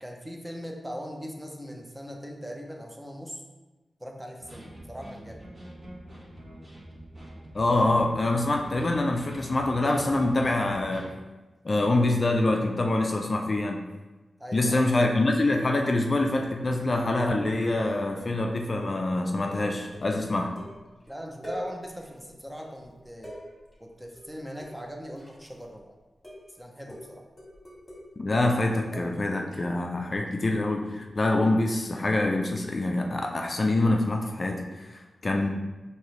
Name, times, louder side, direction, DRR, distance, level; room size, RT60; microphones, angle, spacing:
voice 1, 0.0-3.4 4.0-5.4 14.4-14.8 21.1-23.4 23.8-25.9 26.6-27.3, equal, 10° right, 1 dB, 0.6 m, -40 dB
sound 1, 4.4-11.1, right 1 dB, 45° right, 1.4 m, -45 dB
voice 2, 7.5-11.1 11.6-13.8 14.5-20.6 28.2-35.5, left 2 dB, 40° left, 2 dB, 0.4 m, -25 dB
sound 2, 16.1-16.7 16.9-17.3 17.6-21.1 21.4-22.3 22.6-25.8 26.2-26.5 26.9-29.7 30.1-30.2, equal, 15° left, 1.5 m, -44 dB
4.6 x 2.9 x 3.1 m, 1.2 s
wide cardioid pair, 75°, 0 cm